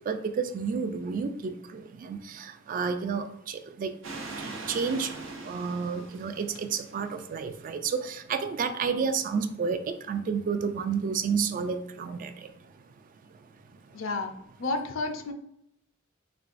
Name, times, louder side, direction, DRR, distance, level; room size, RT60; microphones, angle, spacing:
voice 1, 0.1-4.0 4.4-5.2 5.4-12.3, right 5 dB, 45° right, 10 dB, 0.3 m, -30 dB
sound 1, 4.0-7.4, right 3 dB, 85° right, 0.7 m, -41 dB
voice 2, 13.9-14.3 14.6-15.3, left 3 dB, 80° left, 7 dB, 0.5 m, -31 dB
4.4 x 3.0 x 2.5 m, 0.76 s
head